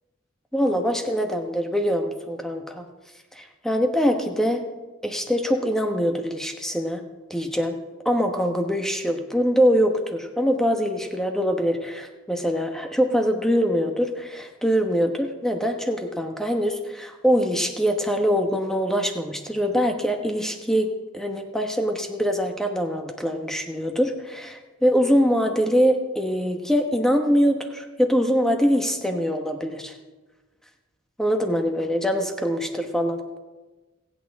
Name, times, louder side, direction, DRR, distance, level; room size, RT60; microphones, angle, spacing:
voice 1, 0.5-2.8 3.3-4.6 5.0-7.0 7.3-7.8 8.0-20.9 21.1-30.0 31.2-33.2, equal, ahead, 4 dB, 1.0 m, -23 dB
26.0 x 8.7 x 3.6 m, 1.2 s
head